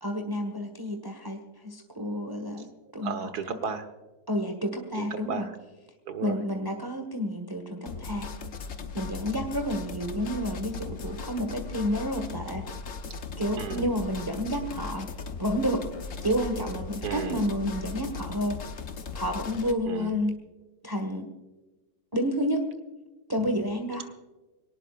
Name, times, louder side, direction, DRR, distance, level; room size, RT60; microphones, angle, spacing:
voice 1, 0.0-3.2 3.5-3.6 4.3-5.5 6.2-8.3 8.9-12.6 13.4-15.1 15.4-15.9 16.2-18.6 19.1-20.3 20.8-21.3 22.1-22.6 23.3-24.1, equal, 15° right, 4 dB, 1.4 m, -30 dB
voice 2, 3.0-3.9 5.0-5.6 6.1-6.4 13.6-13.9 17.0-17.4 19.8-20.1, right 5 dB, 80° right, 8 dB, 1.8 m, -34 dB
sound 1, 7.9-19.7, left 5 dB, 55° left, 1.4 m, -38 dB
23.5 x 18.5 x 2.5 m, 1.2 s
omnidirectional pair, 1.7 m